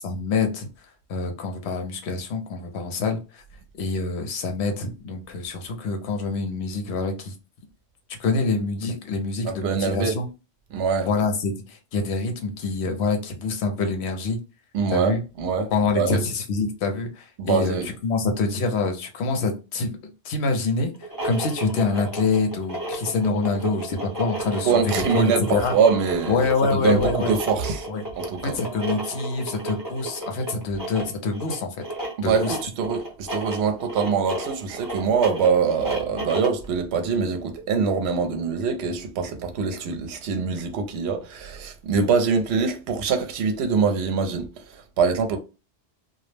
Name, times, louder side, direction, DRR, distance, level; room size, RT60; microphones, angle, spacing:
voice 1, 0.0-0.7 1.1-3.4 3.8-7.3 8.2-10.3 11.1-14.4 14.9-15.2 15.7-20.0 20.2-20.9 21.2-25.7 26.3-27.3 27.9-28.0 28.4-31.8 32.2-32.6, left 4 dB, 70° left, 0.9 m, -26 dB
voice 2, 9.4-10.2 10.7-11.1 14.7-16.2 17.4-17.9 24.6-27.9 28.2-28.6 32.2-45.4, right 5 dB, 70° right, 0.8 m, -24 dB
sound 1, 20.9-36.6, right 2 dB, 20° right, 0.7 m, -32 dB
2.3 x 2.0 x 3.1 m
omnidirectional pair, 1.2 m